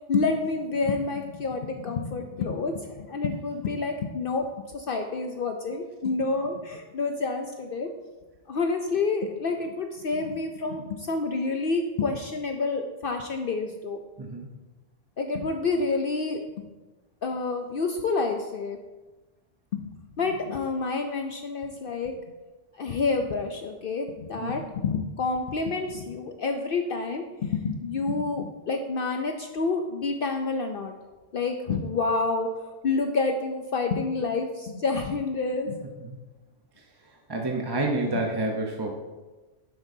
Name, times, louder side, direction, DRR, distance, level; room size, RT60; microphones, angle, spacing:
voice 1, 0.1-4.5 4.7-7.9 8.5-14.0 15.2-16.4 17.2-18.8 19.7-19.9 20.2-22.1 22.8-30.9 31.3-35.8, left 4 dB, 55° left, 4 dB, 0.7 m, -28 dB
voice 2, 14.2-14.5 24.4-24.5 36.0-36.2 37.3-38.9, right 2 dB, 25° right, 1 dB, 0.7 m, -28 dB
9.7 x 7.7 x 2.7 m, 1.2 s
omnidirectional pair, 1.3 m